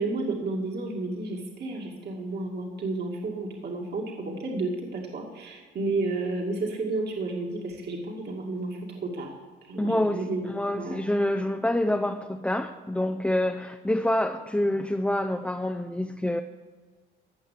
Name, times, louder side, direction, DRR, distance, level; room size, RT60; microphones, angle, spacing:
voice 1, 0.0-9.3 9.7-10.5 10.8-11.0, right 2 dB, 55° right, -1 dB, 2.4 m, -31 dB
voice 2, 9.8-16.4, left 1 dB, 5° left, 5 dB, 0.6 m, -27 dB
16.0 x 6.2 x 8.3 m, 1.5 s
cardioid pair, 90°, 20 cm